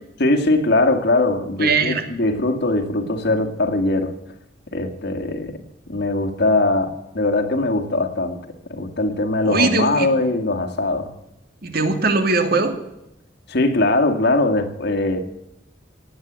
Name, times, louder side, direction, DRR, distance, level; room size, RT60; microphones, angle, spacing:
voice 1, 0.2-4.1 4.7-5.6 5.9-8.4 8.7-11.1 13.5-15.2, left 2 dB, 65° left, 4 dB, 2.1 m, -21 dB
voice 2, 1.6-2.0 9.4-10.1 11.6-12.7, right 3 dB, 60° right, 7 dB, 2.1 m, -20 dB
17.0 x 9.6 x 8.8 m, 0.87 s
head